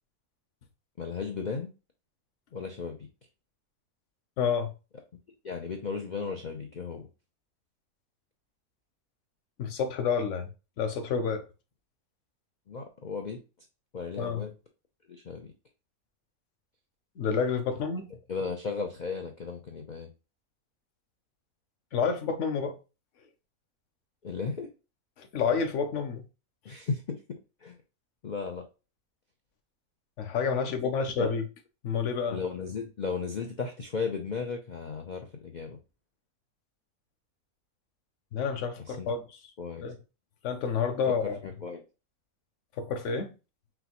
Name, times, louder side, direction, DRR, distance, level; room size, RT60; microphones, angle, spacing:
voice 1, 1.0-1.7 2.5-3.0 5.4-7.1 12.7-13.4 13.9-14.5 15.1-15.5 18.3-20.1 24.2-24.7 26.6-27.8 28.2-28.7 31.2-31.3 32.3-35.8 38.8-39.1 39.6-39.8 41.1-41.8, left 5 dB, 90° left, 0.4 m, -35 dB
voice 2, 4.4-4.7 9.6-10.5 10.8-11.4 14.2-14.4 17.2-18.1 21.9-22.8 25.2-26.2 30.2-31.4 31.8-32.4 38.3-39.2 39.8-40.0 40.4-41.4 42.8-43.3, left 6 dB, 60° left, 0.9 m, -29 dB
6.0 x 2.3 x 2.9 m
omnidirectional pair, 1.6 m